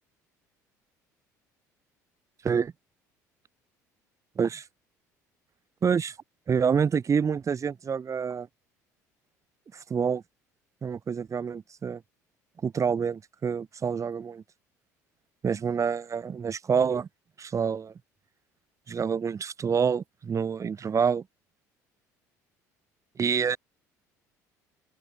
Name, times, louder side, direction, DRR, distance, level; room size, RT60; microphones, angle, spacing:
voice 1, 5.8-6.2 6.5-8.5 9.7-10.2 10.8-12.0 12.6-14.4 15.4-17.1 17.4-17.9 18.9-21.2 23.2-23.6, right 6 dB, 35° right, 5.9 m, -27 dB
open air
hypercardioid pair, 60°, 9 cm